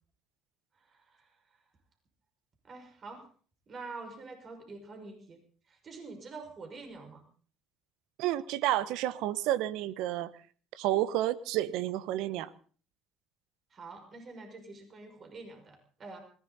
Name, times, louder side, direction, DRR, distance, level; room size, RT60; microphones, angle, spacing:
voice 1, 0.8-1.6 2.6-3.3 3.7-5.4 5.7-7.2 13.7-16.2, right 3 dB, 45° right, 4 dB, 5.8 m, -46 dB
voice 2, 8.2-10.3 10.8-12.5, right 14 dB, 75° right, 16 dB, 1.0 m, -30 dB
20.5 x 17.0 x 4.1 m, 0.41 s
hypercardioid pair, 70°, 0 cm